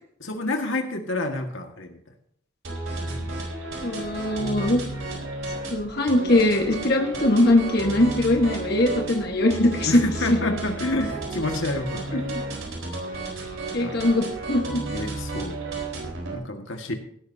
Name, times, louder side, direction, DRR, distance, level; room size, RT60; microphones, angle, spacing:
voice 1, 0.2-2.0 3.0-3.4 3.8-4.0 4.4-4.6 9.8-12.3 13.8-14.0 14.9-15.6 16.3-16.9, left 2 dB, 70° left, 4 dB, 1.9 m, -29 dB
sound 1, 2.6-16.4, right 2 dB, 70° right, 4.2 m, -33 dB
voice 2, 3.8-4.8 5.7-10.0 10.3-10.5 12.1-12.4 13.7-14.8, left 1 dB, 50° left, 2 dB, 1.5 m, -21 dB
16.5 x 12.5 x 2.8 m, 0.69 s
head